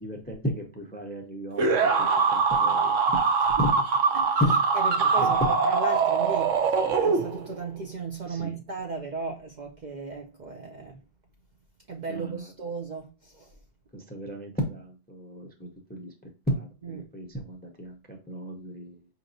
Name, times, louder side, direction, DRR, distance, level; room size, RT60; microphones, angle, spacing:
voice 1, 0.0-3.0 3.6-3.7 4.4-4.6 5.2-5.5 6.8-7.0 8.3-8.6 12.1-12.5 13.9-16.1 16.5-19.0, equal, 15° left, 0.4 m, -33 dB
sound 1, 1.6-7.6, right 5 dB, 80° right, 1.0 m, -23 dB
voice 2, 4.7-11.0 11.9-13.5 16.8-17.1, right 4 dB, 55° right, 0.5 m, -36 dB
5.1 x 2.9 x 2.6 m
omnidirectional pair, 1.3 m